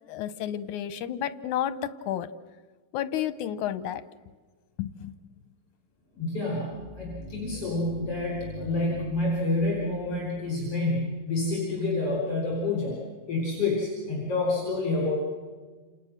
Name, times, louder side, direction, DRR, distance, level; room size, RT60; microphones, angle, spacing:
voice 1, 0.0-2.3 2.9-4.0 4.8-5.1, left 10 dB, 85° left, 13 dB, 2.4 m, -31 dB
sound 1, 6.0-11.6, right 1 dB, 5° left, 6.3 m, -43 dB
voice 2, 6.1-13.0 13.3-15.1, left 2 dB, 50° left, -3 dB, 6.0 m, -28 dB
29.0 x 28.5 x 6.6 m, 1.4 s
omnidirectional pair, 3.4 m